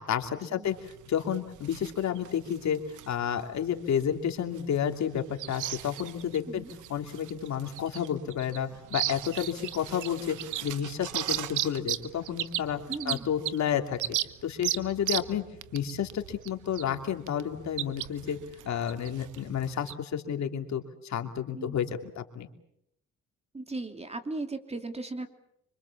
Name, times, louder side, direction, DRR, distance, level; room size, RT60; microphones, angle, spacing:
voice 1, 0.0-2.8 3.1-6.6 6.9-10.4 10.6-12.8 13.0-14.0 14.4-15.4 15.7-18.4 18.6-22.5, left 9 dB, 65° left, 5 dB, 2.9 m, -31 dB
sound 1, 0.7-19.9, right 13 dB, 80° right, 1.1 m, -37 dB
voice 2, 12.9-13.3 21.5-21.8 23.5-25.3, right 2 dB, 20° right, 7 dB, 2.9 m, -37 dB
26.0 x 25.5 x 7.3 m, 0.75 s
cardioid pair, 90°, 30 cm